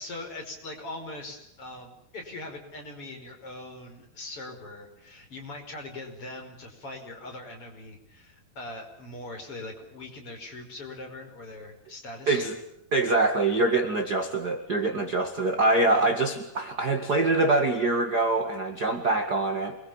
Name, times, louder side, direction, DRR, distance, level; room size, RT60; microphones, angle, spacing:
voice 1, 0.0-12.5, left 2 dB, 35° left, 3 dB, 5.8 m, -41 dB
voice 2, 12.9-19.8, right 2 dB, 35° right, 5 dB, 2.0 m, -24 dB
28.0 x 23.0 x 7.2 m, 0.75 s
omnidirectional pair, 4.6 m